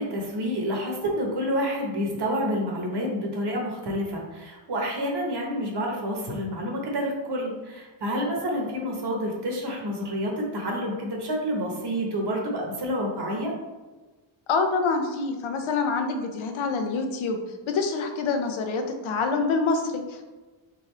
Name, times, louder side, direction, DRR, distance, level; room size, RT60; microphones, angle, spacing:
voice 1, 0.0-13.5, equal, 55° right, 0 dB, 1.2 m, -28 dB
voice 2, 14.5-17.4 17.7-20.2, left 4 dB, 75° left, 5 dB, 0.8 m, -26 dB
3.9 x 3.7 x 3.3 m, 1.2 s
cardioid pair, 110°, 48 cm